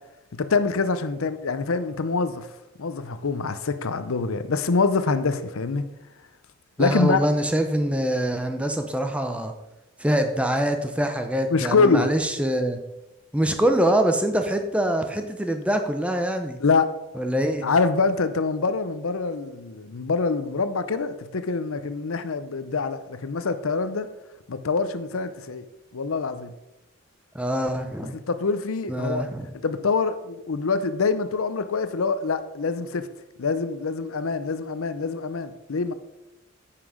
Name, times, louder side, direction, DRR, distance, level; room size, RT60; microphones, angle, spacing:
voice 1, 0.3-2.5 2.8-5.9 6.8-7.2 11.5-12.1 16.6-16.9 17.6-24.1 24.5-25.6 25.9-26.5 28.1-29.3 29.6-33.1 33.4-35.9, left 4 dB, 75° left, 12 dB, 0.6 m, -25 dB
voice 2, 6.8-9.5 10.0-12.8 13.3-16.6 17.2-17.7 27.3-28.1 28.9-29.5, right 1 dB, 5° right, 6 dB, 0.6 m, -24 dB
9.7 x 5.9 x 5.0 m, 0.96 s
head